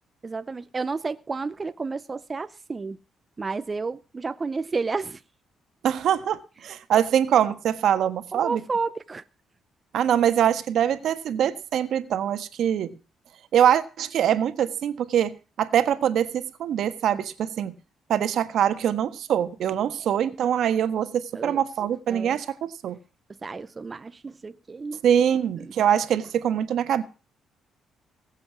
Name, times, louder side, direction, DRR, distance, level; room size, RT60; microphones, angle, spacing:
voice 1, 0.2-3.0 3.4-5.2 8.3-9.2 21.3-21.6 22.1-22.4 23.4-25.0 25.6-25.7, right 4 dB, 30° right, 0.7 m, -31 dB
voice 2, 5.8-8.6 9.9-12.9 13.5-17.7 18.1-23.0 25.0-27.0, right 9 dB, 70° right, 1.4 m, -23 dB
19.0 x 7.7 x 6.1 m
cardioid pair, 90°, 0 cm